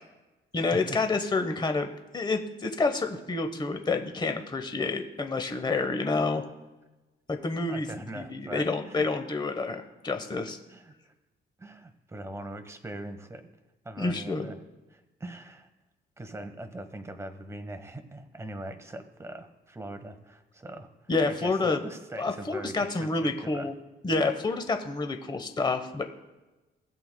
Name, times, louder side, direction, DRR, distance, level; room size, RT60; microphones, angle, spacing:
voice 1, 0.5-1.9 2.1-6.4 7.3-7.9 8.1-10.6 14.0-14.5 21.1-21.8 22.2-23.8 24.0-26.0, left 3 dB, 20° left, 6 dB, 1.0 m, -28 dB
voice 2, 7.7-9.1 10.7-11.1 11.6-13.5 13.8-14.6 14.9-15.7 16.2-20.9 21.4-23.7, right 1 dB, 15° right, 8 dB, 1.1 m, -41 dB
19.0 x 7.9 x 2.2 m, 1.1 s
cardioid pair, 90°, 20 cm